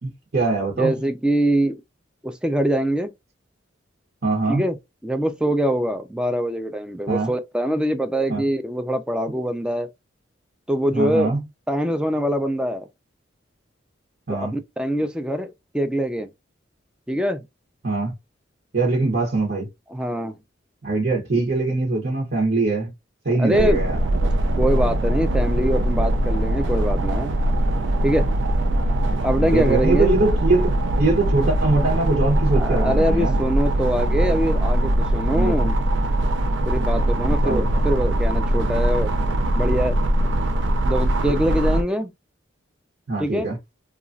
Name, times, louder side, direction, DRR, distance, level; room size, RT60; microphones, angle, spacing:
voice 1, 0.0-0.9 4.2-4.6 7.1-7.3 8.3-8.4 10.9-11.4 14.3-14.6 17.8-18.1 18.7-19.7 20.8-22.9 23.2-24.0 29.1-30.7 31.0-33.4 35.3-35.5 37.3-37.8 43.1-43.6, right 3 dB, 50° right, 0.9 m, -22 dB
voice 2, 0.8-1.8 2.2-3.1 4.5-4.8 5.0-9.9 10.7-11.4 11.7-12.9 14.3-16.3 17.1-17.4 19.9-20.4 23.4-23.8 24.6-27.3 28.0-28.3 29.2-30.2 32.5-35.8 36.7-39.1 39.6-40.0 40.8-42.1 43.2-43.5, equal, 5° right, 0.3 m, -23 dB
sound 1, 23.5-41.8, right 1 dB, 70° right, 0.5 m, -21 dB
3.0 x 2.3 x 2.5 m
head